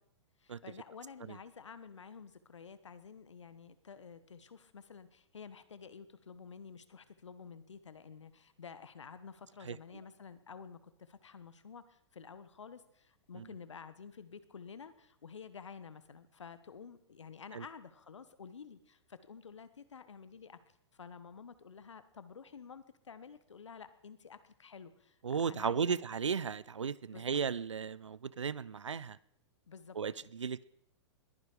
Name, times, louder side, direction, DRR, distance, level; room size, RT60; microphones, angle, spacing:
voice 1, 0.4-20.6 20.9-26.0 27.1-27.4 29.7-30.0, left 6 dB, 80° left, 1.3 m, -51 dB
voice 2, 25.2-29.2 30.0-30.7, right 6 dB, 90° right, 0.5 m, -35 dB
21.0 x 10.0 x 5.0 m
hypercardioid pair, 110°, 15 cm